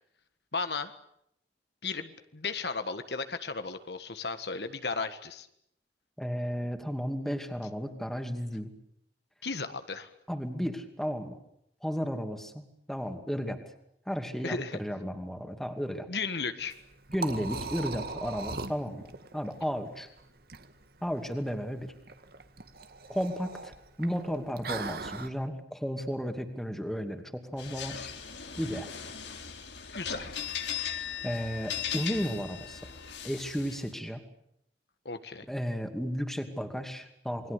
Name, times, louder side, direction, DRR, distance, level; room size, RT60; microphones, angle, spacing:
voice 1, 0.5-1.0 1.8-5.5 9.4-10.1 14.4-14.8 16.1-16.8 29.9-30.3 35.0-35.5, left 4 dB, 70° left, 9 dB, 1.7 m, -35 dB
voice 2, 6.2-8.7 10.3-11.4 11.8-13.6 14.1-16.1 17.1-20.1 21.0-21.9 23.1-28.1 28.6-28.9 31.2-32.9 33.2-34.2 35.5-37.5, equal, ahead, 6 dB, 2.6 m, -34 dB
Liquid, 16.6-25.3, right 3 dB, 60° right, 1.8 m, -40 dB
sound 1, 27.6-33.9, left 8 dB, 90° left, 3.6 m, -38 dB
28.5 x 21.5 x 8.3 m, 0.74 s
head